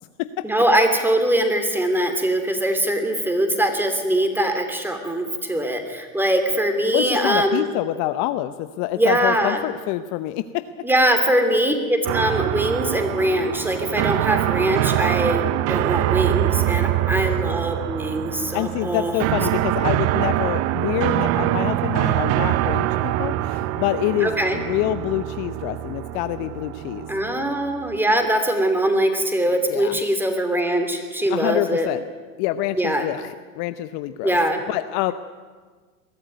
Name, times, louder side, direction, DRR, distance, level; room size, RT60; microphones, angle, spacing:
voice 1, 0.4-7.7 9.0-9.6 10.8-19.1 24.2-24.6 27.1-31.9 32.8-33.1 34.2-34.6, right 1 dB, 5° right, 6 dB, 2.9 m, -22 dB
voice 2, 6.9-10.7 18.5-27.1 29.7-30.0 31.3-32.0 32.4-34.4 34.7-35.1, left 14 dB, 45° left, 11 dB, 0.8 m, -26 dB
sound 1, 12.0-28.0, right 15 dB, 35° right, 0.6 m, -24 dB
21.0 x 13.5 x 9.4 m, 1.5 s
hypercardioid pair, 115°, 43 cm